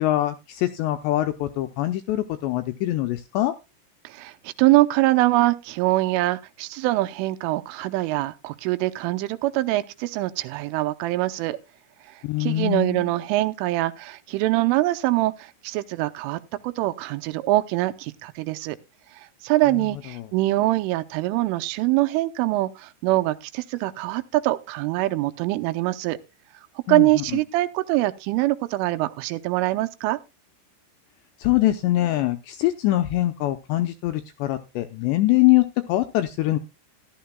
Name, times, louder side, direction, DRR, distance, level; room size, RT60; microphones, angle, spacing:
voice 1, 0.0-3.5 12.2-13.2 19.7-20.3 26.9-27.4 31.4-36.6, left 15 dB, 85° left, 2.5 m, -23 dB
voice 2, 4.0-11.6 12.4-18.8 19.4-26.2 26.9-30.2, right 17 dB, 85° right, 3.1 m, -23 dB
14.5 x 12.5 x 2.2 m
omnidirectional pair, 5.7 m